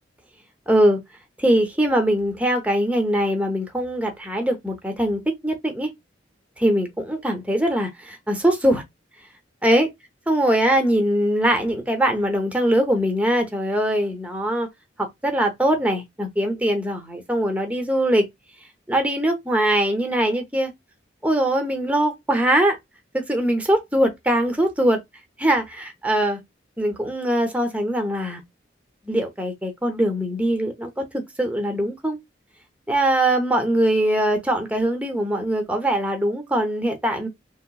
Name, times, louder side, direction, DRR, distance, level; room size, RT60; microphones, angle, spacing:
voice 1, 0.7-1.0 1.4-5.9 6.6-8.8 9.6-9.9 10.3-14.7 15.0-18.3 18.9-20.7 21.2-22.8 23.1-25.0 25.4-26.4 26.8-28.4 29.1-32.2 32.9-37.3, right 1 dB, 5° right, 0.7 m, -22 dB
3.0 x 2.9 x 2.3 m
head